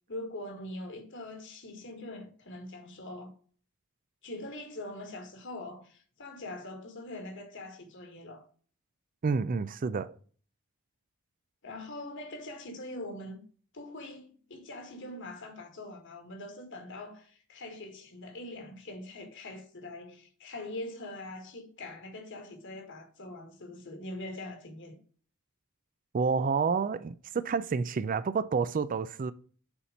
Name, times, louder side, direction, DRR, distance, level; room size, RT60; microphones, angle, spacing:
voice 1, 0.1-3.3 4.2-8.4 11.6-13.4 13.7-25.0, left 1 dB, 55° left, 1.7 m, -43 dB
voice 2, 9.2-10.2 26.1-29.3, right 5 dB, 40° right, 0.4 m, -29 dB
7.1 x 4.3 x 5.1 m
head